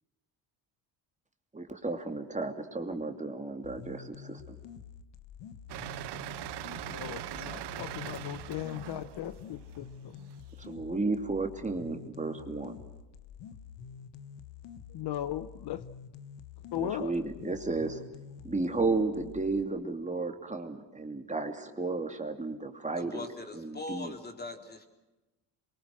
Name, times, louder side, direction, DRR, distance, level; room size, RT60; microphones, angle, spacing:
voice 1, 1.5-4.6 10.6-12.8 16.7-18.0 18.4-23.3 23.5-24.1, right 3 dB, 15° right, 2.8 m, -33 dB
sound 1, 3.6-19.6, left 7 dB, 85° left, 1.5 m, -48 dB
sound 2, 5.7-10.7, right 14 dB, 65° right, 1.0 m, -41 dB
voice 2, 6.8-10.3 14.9-15.8 16.7-17.1, left 12 dB, 65° left, 1.1 m, -37 dB
voice 3, 23.0-24.9, left 2 dB, 20° left, 3.9 m, -41 dB
27.5 x 23.5 x 6.3 m
cardioid pair, 95°, 43 cm